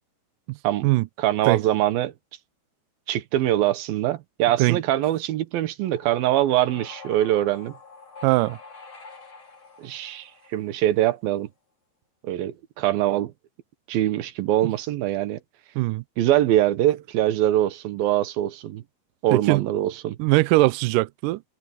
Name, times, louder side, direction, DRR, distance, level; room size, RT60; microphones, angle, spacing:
voice 1, 1.2-2.1 3.1-7.7 9.8-11.5 12.2-13.3 13.9-15.4 16.2-18.8 19.2-20.2, right 13 dB, 75° right, 2.8 m, -23 dB
sound 1, 5.8-11.1, left 4 dB, 40° left, 5.4 m, -46 dB
voice 2, 8.2-8.6 14.6-14.7 15.8-16.0 19.3-19.6 20.2-21.4, right 20 dB, 90° right, 1.8 m, -21 dB
omnidirectional pair, 4.5 m